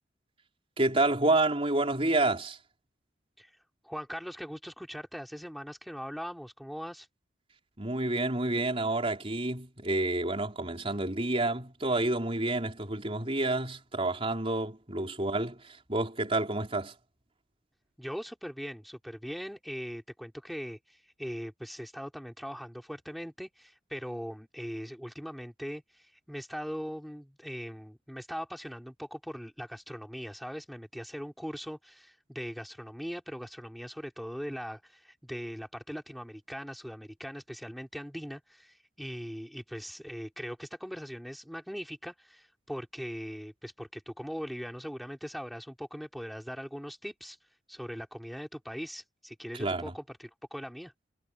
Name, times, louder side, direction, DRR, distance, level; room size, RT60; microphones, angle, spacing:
voice 1, 0.8-2.6 7.8-16.9 49.6-49.9, right 2 dB, 30° right, 4.3 m, -29 dB
voice 2, 3.8-7.1 18.0-47.4 47.7-50.9, equal, ahead, 3.1 m, -40 dB
head